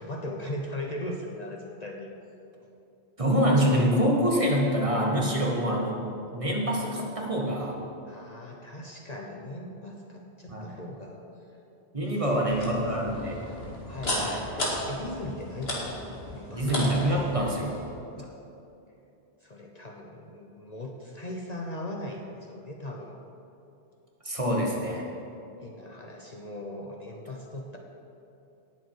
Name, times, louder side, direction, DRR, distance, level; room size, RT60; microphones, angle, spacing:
voice 1, 0.0-2.1 5.5-5.7 8.1-11.2 12.0-13.2 13.9-15.9 16.3-16.8 18.2-18.4 19.4-23.2 25.6-27.8, left 1 dB, 40° left, 0 dB, 1.0 m, -39 dB
voice 2, 3.2-6.0 6.3-7.8 10.5-10.7 11.9-13.4 14.1-14.4 16.5-17.8 24.2-25.0, equal, 30° right, -2 dB, 1.7 m, -25 dB
sound 1, 12.5-17.8, left 1 dB, 65° left, 2.4 m, -34 dB
18.0 x 7.5 x 4.7 m, 2.8 s
omnidirectional pair, 1.1 m